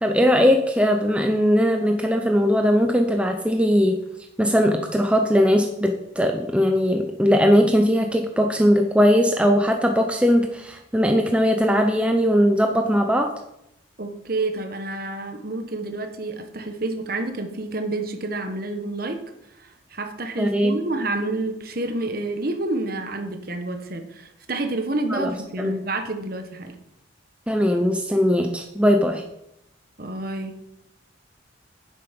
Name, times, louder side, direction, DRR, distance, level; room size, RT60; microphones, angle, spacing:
voice 1, 0.0-4.0 4.4-13.3 20.4-20.8 25.1-25.3 25.6-25.8 27.5-29.2, equal, 5° right, 4 dB, 0.6 m, -19 dB
voice 2, 14.0-19.2 19.6-26.7 30.0-30.6, right 2 dB, 45° right, 6 dB, 1.3 m, -29 dB
10.0 x 7.7 x 5.2 m, 0.82 s
head